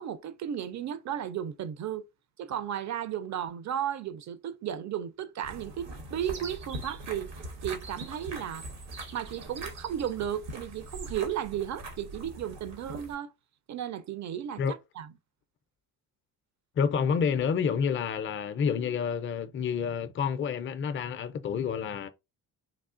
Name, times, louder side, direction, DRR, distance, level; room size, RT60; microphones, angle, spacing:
voice 1, 0.0-2.0 2.4-7.3 7.6-8.6 9.1-13.3 13.7-15.1, right 10 dB, 40° right, 0.5 m, -34 dB
sound 1, 5.4-13.2, right 2 dB, 70° right, 1.2 m, -42 dB
Chirp tweet, 6.2-11.3, right 5 dB, 90° right, 0.9 m, -49 dB
voice 2, 16.8-22.1, left 6 dB, 30° left, 0.5 m, -29 dB
3.4 x 2.3 x 2.5 m
hypercardioid pair, 55°, 45 cm